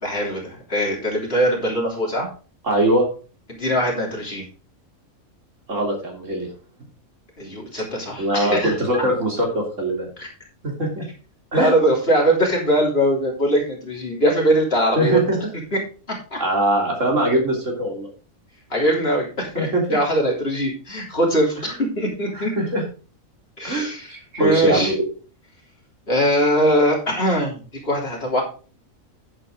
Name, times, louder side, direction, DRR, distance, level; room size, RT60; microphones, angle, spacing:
voice 1, 0.0-2.3 3.5-4.4 7.4-9.0 10.2-10.3 11.5-15.2 16.3-16.4 18.7-22.5 23.6-24.1 24.4-24.9 26.1-28.4, equal, 45° left, -1 dB, 3.4 m, -21 dB
voice 2, 2.6-3.1 5.7-6.5 8.2-10.1 10.6-11.0 11.5-11.7 15.0-15.4 16.4-18.1 19.6-20.0 22.3-22.8 23.6-25.0, right 1 dB, 65° right, 0 dB, 3.7 m, -22 dB
10.5 x 8.1 x 3.7 m, 0.37 s
omnidirectional pair, 1.4 m